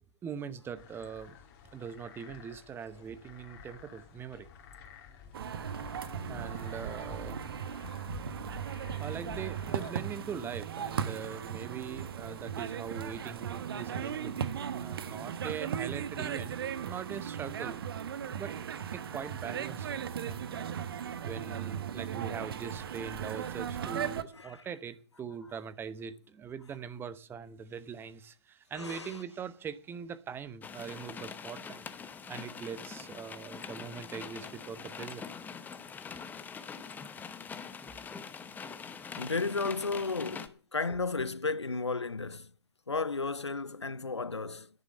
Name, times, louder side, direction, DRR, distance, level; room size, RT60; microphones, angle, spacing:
voice 1, 0.2-1.4 1.7-4.5 6.3-7.4 9.0-14.5 14.8-17.8 18.4-18.6 18.9-20.7 21.2-31.8 32.3-35.3 38.1-38.3, right 7 dB, 15° right, 0.9 m, -42 dB
sound 1, 0.7-9.9, left 6 dB, 40° left, 2.9 m, -50 dB
sound 2, 5.3-24.2, right 8 dB, 60° right, 1.1 m, -37 dB
voice 2, 28.7-29.2 36.7-36.9 39.2-42.5 42.9-44.7, left 4 dB, 90° left, 0.5 m, -34 dB
sound 3, 30.6-40.5, left 6 dB, 10° left, 0.9 m, -44 dB
10.5 x 8.7 x 7.6 m
figure-of-eight pair, 110°, 14 cm